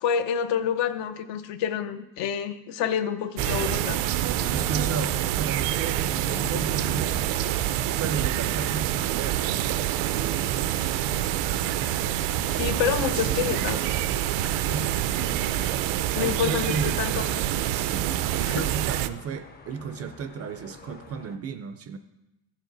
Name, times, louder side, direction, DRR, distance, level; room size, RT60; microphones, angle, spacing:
voice 1, 0.0-4.0 12.5-13.9 16.1-17.5 18.5-18.6, left 8 dB, 70° left, 9 dB, 0.8 m, -28 dB
summerevening street ber, 3.4-21.4, left 4 dB, 20° left, 0.5 m, -43 dB
sound 1, 3.4-19.1, right 13 dB, 80° right, 0.6 m, -26 dB
voice 2, 4.4-7.3 8.0-9.7 14.4-14.9 15.2-15.4 16.2-16.9 17.7-22.0, right 5 dB, 35° right, 10 dB, 0.4 m, -34 dB
14.0 x 7.3 x 3.9 m, 0.95 s
cardioid pair, 170°, 45 cm